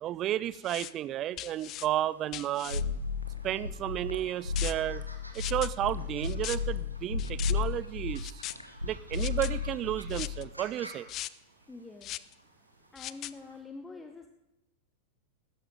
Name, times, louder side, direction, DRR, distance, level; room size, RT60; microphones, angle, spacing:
voice 1, 0.0-2.8 3.4-5.0 5.3-8.4 8.8-11.1, right 12 dB, 35° right, 19 dB, 0.5 m, -32 dB
sound 1, 0.5-0.9 1.4-1.9 2.3-2.8 4.6-4.7 5.3-5.7 6.2-6.6 7.2-7.5 8.2-8.5 9.1-9.5 10.1-10.4 11.1-11.3 12.0-12.3 13.0-13.3, left 15 dB, 35° left, 0.4 m, -39 dB
sound 2, 1.2-13.6, right 1 dB, 85° right, 1.6 m, -54 dB
sound 3, 2.7-10.5, left 5 dB, 90° left, 1.0 m, -33 dB
voice 2, 11.7-12.1 12.9-14.3, left 3 dB, 10° left, 6 dB, 0.9 m, -45 dB
16.0 x 13.5 x 3.7 m, 0.91 s
figure-of-eight pair, 90°, 0 cm